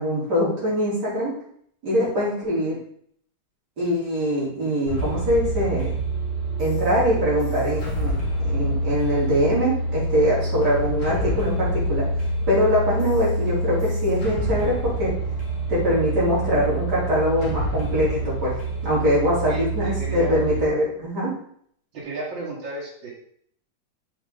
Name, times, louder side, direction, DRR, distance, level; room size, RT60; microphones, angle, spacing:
voice 1, 0.0-1.3 1.8-2.8 3.8-5.9 6.6-8.1 8.4-12.1 12.5-15.1 15.7-21.3, equal, 65° right, -8 dB, 4.0 m, -23 dB
sound 1, 4.9-20.6, right 2 dB, 45° left, 2.1 m, -26 dB
voice 2, 20.0-20.3 21.9-23.1, right 2 dB, 90° right, -4 dB, 2.1 m, -33 dB
6.9 x 5.0 x 3.7 m, 0.64 s
omnidirectional pair, 2.0 m